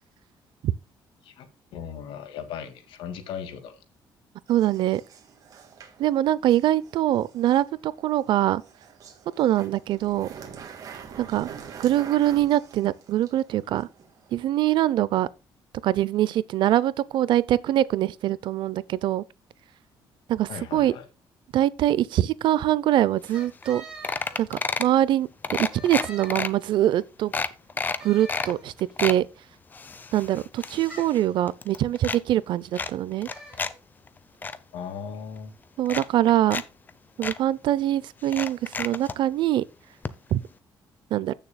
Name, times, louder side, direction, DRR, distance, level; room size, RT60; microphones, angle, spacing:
voice 1, 1.7-3.8 20.5-21.1 34.7-35.5 36.2-36.6, left 7 dB, 85° left, 1.9 m, -37 dB
sound 1, 4.5-14.3, right 7 dB, 40° right, 1.9 m, -46 dB
voice 2, 4.5-5.0 6.0-8.6 9.4-10.3 11.2-11.5 11.8-13.9 14.3-15.3 15.8-19.2 20.3-20.9 21.5-23.8 24.4-27.3 28.0-28.7 29.0-29.3 30.1-33.3 35.8-36.6 37.2-39.6 40.3-40.4 41.1-41.3, right 13 dB, 65° right, 0.5 m, -23 dB
sound 2, 23.3-23.4 23.6-23.8 24.0-25.0 25.4-26.5 26.9-27.0 27.3-28.5 28.8-29.2 29.7-31.2 31.5-32.2 32.7-33.7 34.1-34.6 35.4-35.5 35.8-36.6 36.9-37.0 37.2-37.4 38.2-39.2 40.0-40.1 40.4-40.5, left 4 dB, 20° left, 0.6 m, -30 dB
sound 3, 23.3-25.0 25.5-26.9 28.0-29.0 30.9-31.3 33.3-33.7, right 1 dB, 10° right, 4.1 m, -45 dB
15.5 x 6.7 x 2.2 m
cardioid pair, 160°, 9 cm